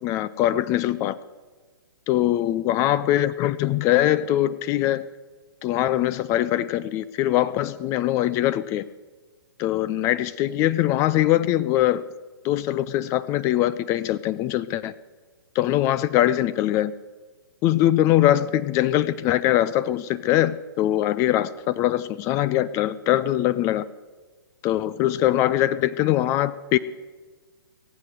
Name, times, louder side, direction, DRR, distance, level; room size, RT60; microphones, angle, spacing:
voice 1, 0.0-1.2 2.1-5.0 5.6-8.8 9.6-12.0 12.4-14.9 15.6-16.9 17.6-23.9 24.6-26.8, left 13 dB, 25° left, 17 dB, 0.3 m, -22 dB
18.0 x 8.1 x 7.8 m, 1.4 s
figure-of-eight pair, 125°, 12 cm